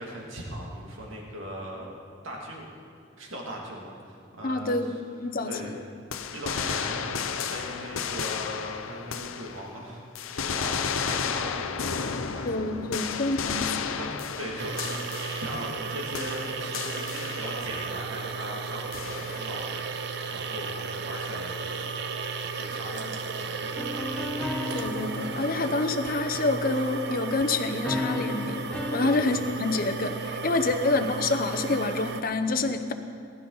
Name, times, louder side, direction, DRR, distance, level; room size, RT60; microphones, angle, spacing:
voice 1, 0.0-2.7 3.2-5.0 5.5-5.7 6.3-12.7 13.9-21.9 22.4-24.3 29.0-29.2 30.6-30.7, equal, 75° right, -2 dB, 2.5 m, -39 dB
voice 2, 4.4-4.9 5.2-5.6 12.4-13.9 22.9-23.0 24.7-32.9, left 2 dB, 45° left, 8 dB, 0.8 m, -27 dB
sound 1, 6.1-9.8 10.1-15.9 16.1-17.8 18.9-19.6, left 6 dB, 85° left, 0.7 m, -33 dB
sound 2, 14.6-32.2, right 4 dB, 55° right, 0.7 m, -34 dB
sound 3, 23.8-27.0 27.8-29.2, left 2 dB, 5° left, 0.6 m, -34 dB
19.5 x 12.5 x 4.0 m, 2.2 s
head